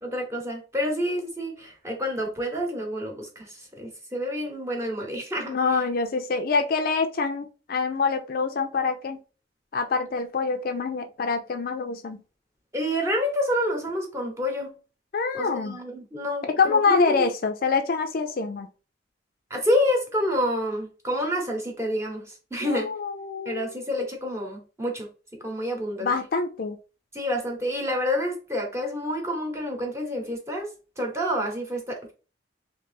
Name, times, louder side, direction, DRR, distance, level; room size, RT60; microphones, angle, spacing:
voice 1, 0.0-5.8 12.7-14.7 15.3-17.3 19.5-22.9 23.4-25.1 25.4-26.1 27.1-30.7 31.0-32.1, equal, 15° right, 1.0 m, -28 dB
voice 2, 5.5-9.2 9.7-12.2 15.1-15.8 16.6-18.7 22.6-23.7 26.0-26.8, left 4 dB, 55° left, 0.4 m, -25 dB
3.2 x 2.7 x 3.4 m
head